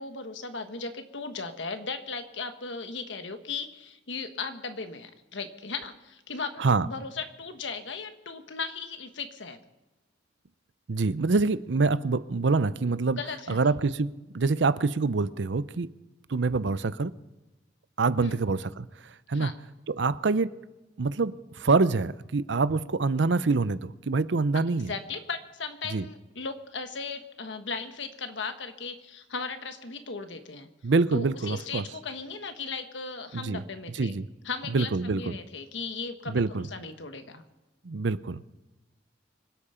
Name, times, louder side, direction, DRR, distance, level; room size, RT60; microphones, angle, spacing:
voice 1, 0.0-9.6 13.1-13.7 18.2-18.4 19.3-19.5 24.9-30.7 31.1-34.1 34.4-37.4, left 4 dB, 75° left, 1.4 m, -37 dB
voice 2, 10.9-13.2 13.5-15.9 16.3-17.1 18.0-19.5 19.9-20.6 21.0-24.9 25.9-26.1 30.8-31.9 33.3-33.6 33.9-34.3 34.7-35.4 36.3-36.7 37.8-38.4, right 3 dB, 70° right, 0.6 m, -26 dB
25.0 x 8.7 x 5.7 m
head